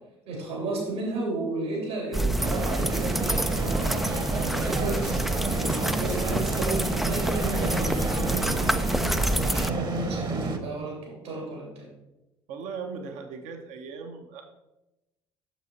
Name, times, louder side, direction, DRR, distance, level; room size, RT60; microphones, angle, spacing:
voice 1, 0.3-11.9, right 2 dB, 75° right, -2 dB, 3.1 m, -33 dB
sound 1, 2.1-9.7, right 1 dB, ahead, 0.4 m, -28 dB
sound 2, 2.4-10.6, right 3 dB, 35° right, 1.1 m, -30 dB
voice 2, 12.5-14.4, right 5 dB, 60° right, 5 dB, 1.0 m, -38 dB
7.1 x 6.5 x 4.3 m, 0.97 s
figure-of-eight pair, 55°, 14 cm